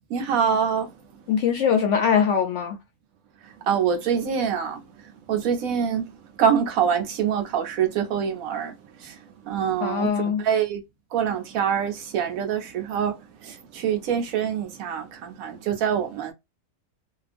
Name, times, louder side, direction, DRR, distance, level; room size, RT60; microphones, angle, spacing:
voice 1, 0.1-0.9 3.7-4.8 5.3-6.1 6.4-8.7 9.0-9.2 9.5-10.1 10.4-10.8 11.1-16.3, right 8 dB, 70° right, 1.0 m, -25 dB
voice 2, 1.3-2.8 9.8-10.4, left 7 dB, 70° left, 0.7 m, -22 dB
2.7 x 2.3 x 2.4 m
omnidirectional pair, 1.6 m